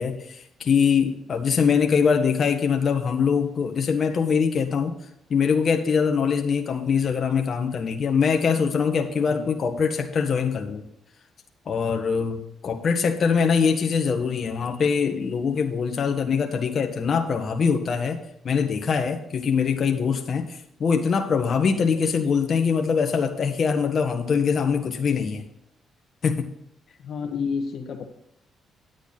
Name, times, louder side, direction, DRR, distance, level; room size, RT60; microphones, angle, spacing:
voice 1, 0.0-4.9 5.3-10.8 11.6-25.4 26.2-26.5, left 6 dB, 50° left, 3 dB, 1.4 m, -23 dB
voice 2, 27.0-28.1, left 5 dB, 70° left, 4 dB, 1.4 m, -30 dB
10.5 x 8.2 x 4.1 m, 0.77 s
cardioid pair, 90°, 0 cm